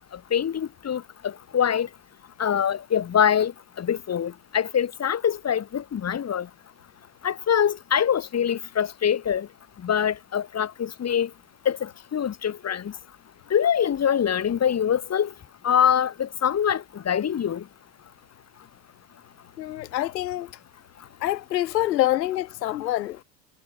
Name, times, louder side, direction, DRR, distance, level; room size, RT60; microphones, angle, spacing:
voice 1, 0.3-1.9 2.4-3.5 3.8-6.5 7.2-9.5 9.8-11.3 11.6-12.9 13.5-15.3 15.6-17.6, left 8 dB, 30° left, 6.2 m, -24 dB
voice 2, 19.6-20.5 21.2-23.2, left 14 dB, 85° left, 6.1 m, -26 dB
hypercardioid pair, 100°, 49 cm